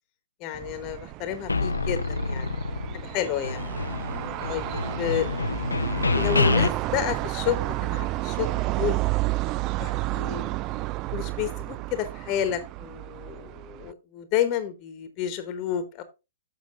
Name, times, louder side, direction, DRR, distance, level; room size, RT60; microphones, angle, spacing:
voice 1, 0.4-2.5 3.0-3.7 4.4-5.3 6.1-9.0 9.8-10.5 11.1-16.0, left 10 dB, 35° left, 10 dB, 1.2 m, -30 dB
sound 1, 0.5-13.9, right 18 dB, 35° right, 0.3 m, -31 dB
sound 2, 1.5-3.2 3.4-6.7, left 3 dB, 85° left, 0.6 m, -27 dB
7.5 x 6.1 x 3.7 m, 0.26 s
hypercardioid pair, 120°, 0 cm